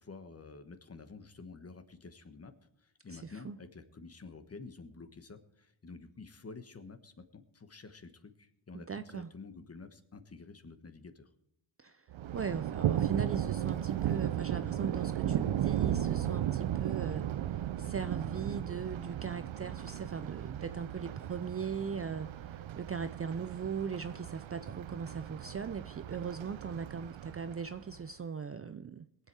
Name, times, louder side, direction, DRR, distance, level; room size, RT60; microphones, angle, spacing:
voice 1, 0.0-2.5 2.8-11.3, left 4 dB, 30° left, 10 dB, 1.3 m, -50 dB
voice 2, 3.1-3.6 8.9-9.3 11.8-12.0 12.3-29.1, right 6 dB, 30° right, 11 dB, 0.5 m, -39 dB
Thunder, 12.1-28.0, right 11 dB, 70° right, 0.7 m, -35 dB
21.5 x 8.0 x 4.7 m, 0.78 s
wide cardioid pair, 140°, 48 cm